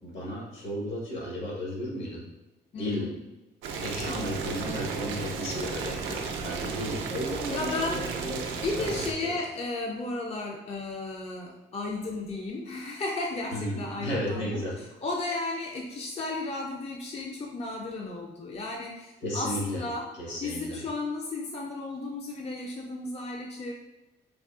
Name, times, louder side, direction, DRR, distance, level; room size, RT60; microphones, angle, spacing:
voice 1, 0.0-2.2 2.7-3.1 3.8-8.4 8.8-8.9 9.2-9.4 13.5-14.8 19.2-19.8 20.1-20.8, equal, 70° left, -3 dB, 1.2 m, -34 dB
voice 2, 2.7-3.2 7.5-8.1 8.6-14.6 15.0-20.1 20.4-23.7, left 2 dB, 30° left, 0 dB, 0.4 m, -34 dB
Boiling, 3.6-9.1, right 5 dB, 75° right, 0.4 m, -34 dB
3.5 x 2.3 x 2.4 m, 1.0 s
supercardioid pair, 70°, 20 cm